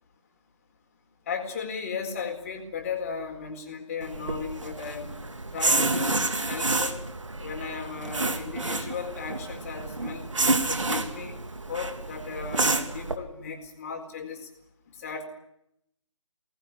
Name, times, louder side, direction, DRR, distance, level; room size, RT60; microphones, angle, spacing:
voice 1, 1.3-5.1 5.5-6.2 6.5-7.0 7.4-10.3 10.7-11.4 11.7-14.5 14.9-15.2, left 6 dB, 30° left, 4 dB, 4.3 m, -36 dB
sound 1, 4.0-13.2, right 2 dB, 70° right, 3.2 m, -29 dB
24.0 x 19.0 x 9.7 m, 0.77 s
figure-of-eight pair, 155°, 17 cm